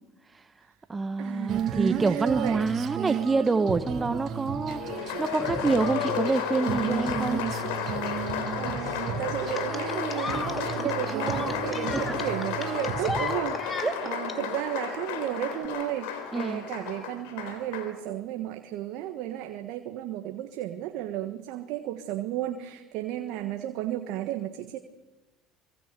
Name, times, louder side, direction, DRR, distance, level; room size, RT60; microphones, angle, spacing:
voice 1, 0.2-0.6 0.9-7.4 12.1-12.2 13.8-13.9 16.3-16.6, right 4 dB, 25° right, 9 dB, 1.2 m, -27 dB
voice 2, 1.2-2.9 8.1-24.8, right 13 dB, 65° right, 7 dB, 1.5 m, -34 dB
Female singing, 1.5-13.4, right 8 dB, 50° right, 3.1 m, -33 dB
Applause, 4.7-18.0, left 8 dB, 75° left, 3.8 m, -33 dB
sound 1, 9.5-14.3 15.5-15.7, left 3 dB, 20° left, 2.5 m, -35 dB
25.0 x 23.5 x 6.9 m, 1.1 s
hypercardioid pair, 70°, 0 cm